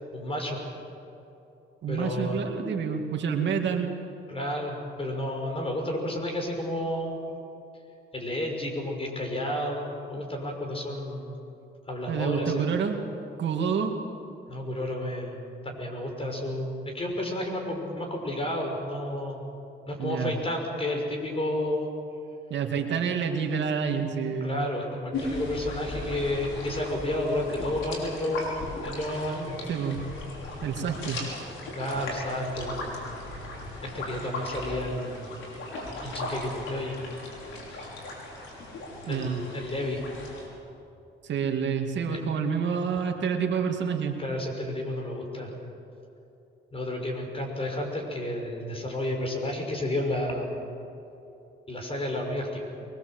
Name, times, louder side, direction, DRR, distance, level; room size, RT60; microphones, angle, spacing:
voice 1, 0.1-0.6 1.9-2.4 4.3-7.2 8.1-11.3 11.9-12.6 14.5-19.4 19.8-21.9 24.4-29.6 31.7-32.9 33.8-35.3 36.0-37.1 39.1-40.0 42.1-42.2 44.2-45.6 46.7-50.5 51.7-52.7, left 1 dB, 30° left, 2 dB, 6.1 m, -31 dB
voice 2, 1.8-4.0 12.1-13.0 13.4-14.0 20.0-20.4 22.5-24.7 29.7-30.0 30.6-31.2 39.1-39.4 41.2-44.2, right 6 dB, 65° right, 3 dB, 2.4 m, -28 dB
sound 1, 25.1-40.5, left 2 dB, 80° left, 5.9 m, -37 dB
23.5 x 22.0 x 7.9 m, 2.9 s
cardioid pair, 90°, 20 cm